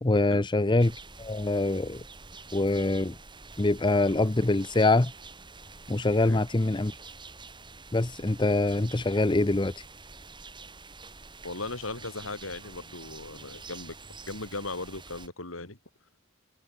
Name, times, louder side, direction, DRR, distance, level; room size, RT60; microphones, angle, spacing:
voice 1, 0.0-2.0 2.5-3.2 3.6-5.1 5.9-7.0 7.9-9.7, left 2 dB, 25° left, 0.7 m, -24 dB
sound 1, 0.8-15.3, right 4 dB, 25° right, 6.1 m, -47 dB
voice 2, 11.4-14.0 14.3-15.8, left 3 dB, 85° left, 3.9 m, -37 dB
head